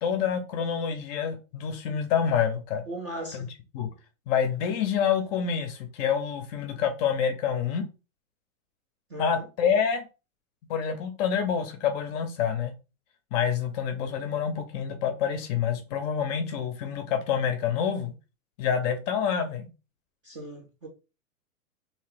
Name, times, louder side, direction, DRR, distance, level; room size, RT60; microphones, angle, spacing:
voice 1, 0.0-2.8 3.3-3.5 3.7-3.9 4.3-7.8 9.2-10.0 10.7-12.7 13.3-18.1 18.6-19.7, left 7 dB, 30° left, 0.6 m, -27 dB
voice 2, 2.9-3.5 9.1-9.5 20.2-20.9, right 1 dB, 20° right, 0.4 m, -38 dB
2.9 x 2.8 x 3.3 m
hypercardioid pair, 135°, 43 cm